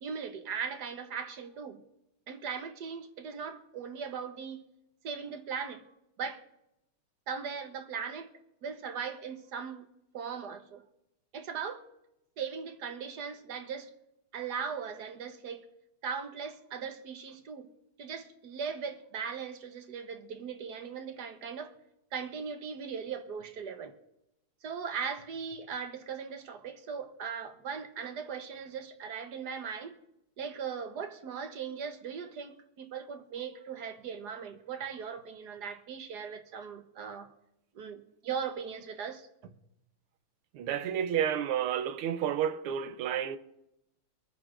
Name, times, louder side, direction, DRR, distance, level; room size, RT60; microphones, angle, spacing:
voice 1, 0.0-1.8 2.3-4.7 5.0-5.8 6.2-6.4 7.3-8.3 8.6-9.9 10.1-10.8 11.3-11.8 12.4-13.9 14.3-15.6 16.0-17.7 18.0-21.7 22.1-23.9 24.6-30.0 30.4-37.3 37.7-39.5, right 6 dB, 55° right, 1.3 m, -39 dB
voice 2, 40.5-43.4, right 9 dB, 85° right, 1.7 m, -30 dB
25.0 x 9.6 x 2.5 m
omnidirectional pair, 2.3 m